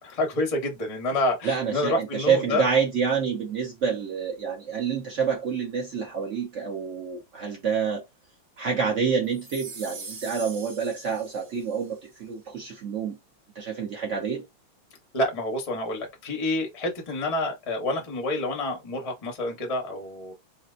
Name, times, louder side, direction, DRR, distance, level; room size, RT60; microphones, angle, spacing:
voice 1, 0.0-2.6 15.1-20.3, left 1 dB, 40° left, 0.5 m, -28 dB
voice 2, 1.4-8.0 8.6-13.2 13.6-14.4, right 6 dB, 60° right, 0.7 m, -27 dB
sound 1, 9.3-11.9, right 3 dB, 85° right, 2.1 m, -42 dB
4.1 x 2.1 x 2.5 m
omnidirectional pair, 2.2 m